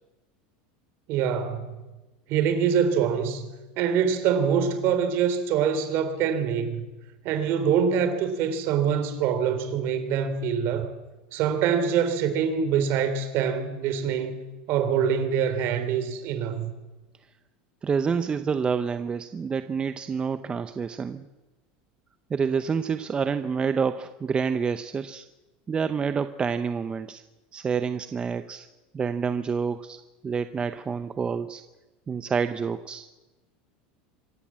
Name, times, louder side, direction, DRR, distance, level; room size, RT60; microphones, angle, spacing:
voice 1, 1.1-1.6 2.3-3.5 3.8-6.9 7.2-10.9 11.3-14.4 14.7-16.7, right 7 dB, 50° right, 3.3 m, -24 dB
voice 2, 17.8-21.3 22.3-25.2 25.7-27.2 27.5-28.7 28.9-31.6 32.1-33.1, right 6 dB, 20° right, 0.7 m, -28 dB
25.5 x 14.5 x 7.5 m
supercardioid pair, 135°, 5 cm